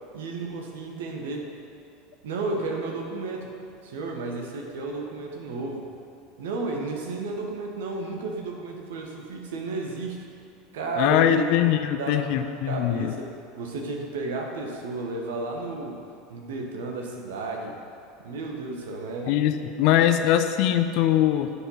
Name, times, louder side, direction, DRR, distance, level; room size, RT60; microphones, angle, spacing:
voice 1, 0.1-1.5 2.2-3.5 3.8-5.9 6.4-10.2 10.7-11.6 12.0-16.0 16.3-17.8 18.2-19.4 20.0-20.1, right 3 dB, 65° right, 1 dB, 1.2 m, -32 dB
voice 2, 11.0-13.1 19.3-21.5, left 11 dB, 55° left, 9 dB, 0.5 m, -22 dB
9.7 x 4.9 x 5.6 m, 2.5 s
figure-of-eight pair, 75°, 0 cm